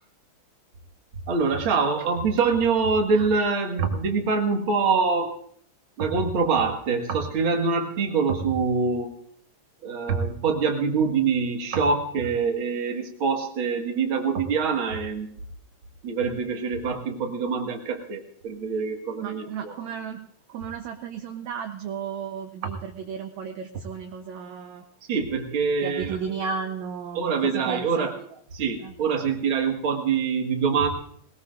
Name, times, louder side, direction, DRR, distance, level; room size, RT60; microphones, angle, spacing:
voice 1, 1.3-5.4 6.0-9.2 9.8-15.4 16.0-19.8 25.1-26.2 27.1-28.1 28.5-30.9, right 5 dB, 45° right, 2 dB, 2.1 m, -25 dB
voice 2, 19.2-24.8 25.8-28.3 28.8-29.0, right 6 dB, 70° right, 5 dB, 2.0 m, -34 dB
20.5 x 20.0 x 2.5 m, 0.66 s
omnidirectional pair, 3.8 m